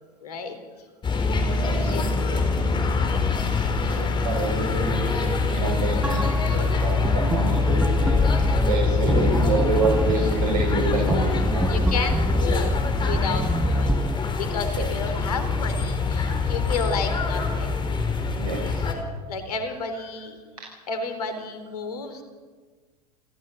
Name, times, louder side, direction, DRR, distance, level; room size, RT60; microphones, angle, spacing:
voice 1, 0.2-0.6 1.8-2.5 11.7-17.7 19.3-20.4 20.9-22.2, left 4 dB, 75° left, 8 dB, 3.8 m, -32 dB
sound 1, 1.0-18.9, left 4 dB, 25° left, 4.4 m, -24 dB
voice 2, 1.6-1.9 2.3-2.4 3.8-8.2 8.7-11.8 14.7-14.9 17.4-17.6 18.3-18.9, right 3 dB, 65° right, -1 dB, 6.7 m, -28 dB
sound 2, 6.0-14.2, right 1 dB, 5° right, 0.6 m, -27 dB
29.5 x 15.0 x 8.1 m, 1.4 s
figure-of-eight pair, 85°, 20 cm